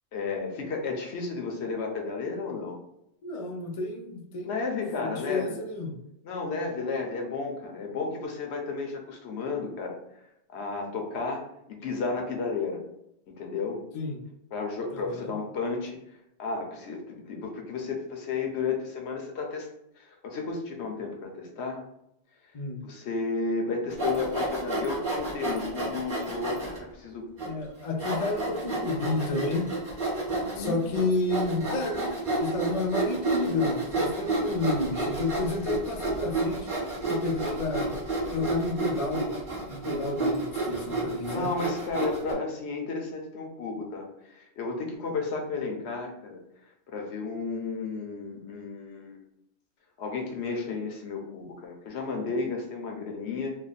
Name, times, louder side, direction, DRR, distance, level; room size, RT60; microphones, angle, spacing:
voice 1, 0.1-2.8 4.4-5.6 6.2-10.0 10.5-12.8 13.3-13.8 14.5-16.0 16.4-19.7 20.0-21.8 22.8-27.3 30.3-30.8 41.3-46.4 46.9-49.2 50.0-53.6, left 4 dB, 75° left, 2 dB, 1.0 m, -33 dB
voice 2, 3.2-4.5 5.0-6.0 13.9-14.2 14.9-15.3 22.5-22.8 27.5-29.7 30.5-36.7 37.1-38.0 38.3-39.3 39.7-41.5, left 2 dB, 45° left, 2 dB, 0.4 m, -30 dB
Sawing, 23.9-26.8 27.4-27.5 28.0-42.3, right 2 dB, 50° right, 1.3 m, -31 dB
3.2 x 2.2 x 4.0 m, 0.81 s
omnidirectional pair, 1.2 m